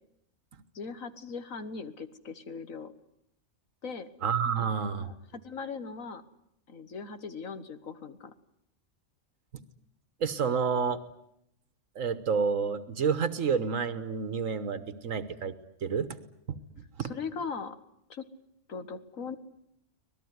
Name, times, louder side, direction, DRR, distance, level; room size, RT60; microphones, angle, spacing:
voice 1, 0.7-2.9 3.8-4.1 4.6-4.7 5.0-6.2 6.7-8.3 17.0-17.8 18.1-18.3 18.7-19.4, left 5 dB, 85° left, 11 dB, 2.0 m, -39 dB
voice 2, 4.2-5.1 10.2-11.0 11.9-15.5 15.8-16.2 16.5-16.6 17.0-17.1, right 6 dB, 80° right, 13 dB, 1.6 m, -29 dB
25.5 x 19.0 x 9.5 m, 0.76 s
omnidirectional pair, 1.3 m